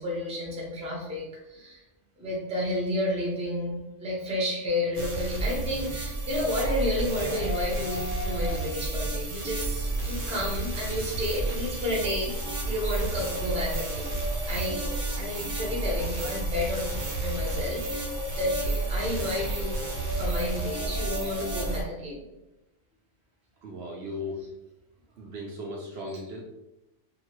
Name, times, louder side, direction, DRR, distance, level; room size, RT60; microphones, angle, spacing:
voice 1, 0.0-1.8 2.2-12.3 12.6-14.1 14.5-14.9 15.2-16.9 17.2-19.8 20.1-22.3, left 1 dB, 5° right, -4 dB, 0.5 m, -31 dB
sound 1, 4.9-21.8, right 2 dB, 85° right, 1.0 m, -31 dB
sound 2, 6.4-9.1 9.5-9.6 10.2-21.9, left 2 dB, 45° left, 0.7 m, -40 dB
voice 2, 23.6-24.5 25.2-26.4, left 1 dB, 65° right, -2 dB, 0.8 m, -37 dB
2.7 x 2.6 x 2.9 m, 0.94 s
omnidirectional pair, 1.3 m